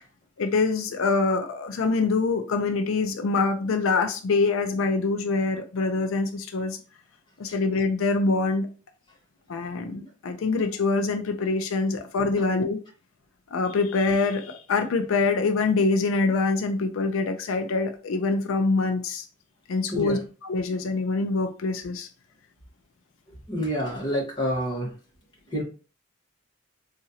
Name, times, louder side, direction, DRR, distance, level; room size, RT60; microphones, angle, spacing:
voice 1, 0.4-6.8 7.4-8.7 9.5-12.8 13.5-19.2 19.7-22.1, left 3 dB, 85° left, 7 dB, 0.4 m, -25 dB
voice 2, 23.5-24.9 25.5-25.6, equal, 20° left, -3 dB, 1.1 m, -28 dB
4.0 x 2.5 x 2.7 m, 0.35 s
head